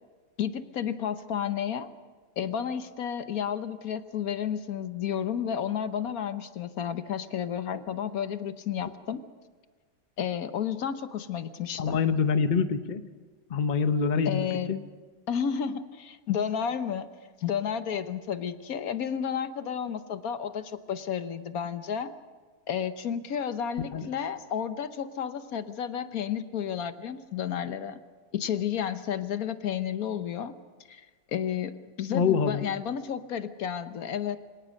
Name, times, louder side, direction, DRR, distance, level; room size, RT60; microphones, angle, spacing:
voice 1, 0.4-1.9 2.4-9.2 10.2-12.0 14.2-14.7 15.3-17.1 17.4-22.1 22.7-28.0 28.3-30.5 30.9-34.4, left 8 dB, 65° left, 11 dB, 1.3 m, -31 dB
voice 2, 11.8-13.1 13.5-14.8 23.8-24.1 32.1-32.6, left 6 dB, 35° left, 10 dB, 0.8 m, -26 dB
25.5 x 18.0 x 6.4 m, 1.4 s
omnidirectional pair, 1.8 m